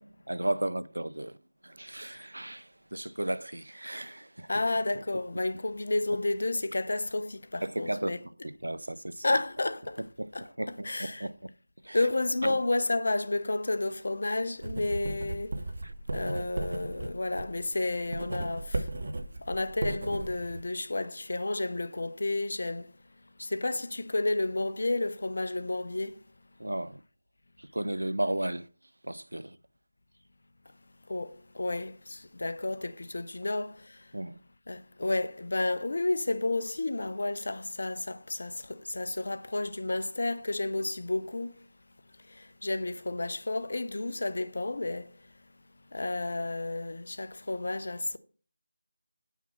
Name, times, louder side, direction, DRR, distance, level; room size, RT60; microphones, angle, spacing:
voice 1, 0.3-1.4 1.6-4.5 7.6-9.2 10.2-10.3 10.6-11.5 11.8-12.0 12.4-12.6 15.8-15.9 26.6-27.0 27.6-28.7 29.0-29.6 34.1-34.4, right 1 dB, 85° right, 0.4 m, -34 dB
voice 2, 4.5-8.2 9.2-10.0 10.3-11.3 11.9-15.6 16.1-18.9 19.5-22.9 23.4-26.1 31.1-34.0 34.7-41.6 42.3-45.1 45.9-48.2, left 2 dB, 60° left, 0.6 m, -31 dB
Writing, 14.6-20.6, right 2 dB, 55° right, 0.8 m, -36 dB
5.9 x 5.7 x 4.2 m
figure-of-eight pair, 165°, 0 cm